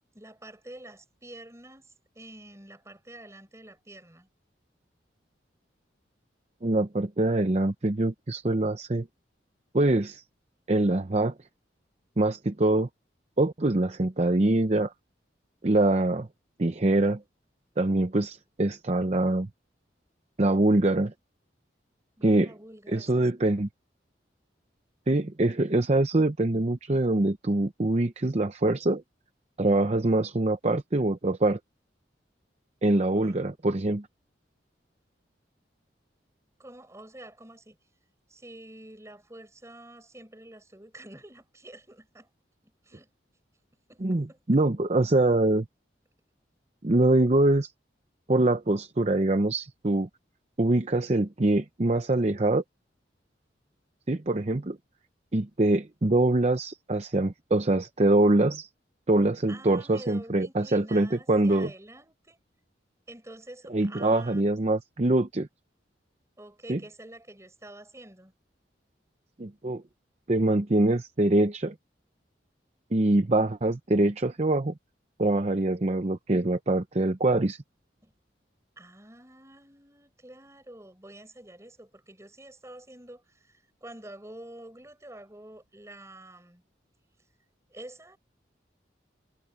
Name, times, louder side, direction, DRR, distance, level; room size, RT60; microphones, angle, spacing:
voice 1, 0.0-4.3 22.2-23.3 33.1-33.5 36.6-37.8 38.3-42.3 42.8-43.1 43.9-44.4 59.5-62.4 63.1-64.4 66.4-68.3 78.0-78.1 78.8-86.6 87.7-88.2, right 1 dB, 15° right, 4.8 m, -48 dB
voice 2, 6.6-9.1 9.7-10.2 10.7-11.3 12.2-12.9 13.4-14.9 15.6-16.3 16.6-17.2 17.8-19.5 20.4-21.1 22.2-22.5 22.9-23.7 25.1-29.0 29.6-31.6 32.8-34.1 44.0-45.6 46.8-47.7 48.3-50.1 50.6-52.6 54.1-54.8 55.3-58.7 59.1-61.7 63.7-65.5 66.7-66.8 69.4-69.8 70.3-71.7 72.9-74.7 75.2-77.6, right 2 dB, 35° right, 0.7 m, -24 dB
head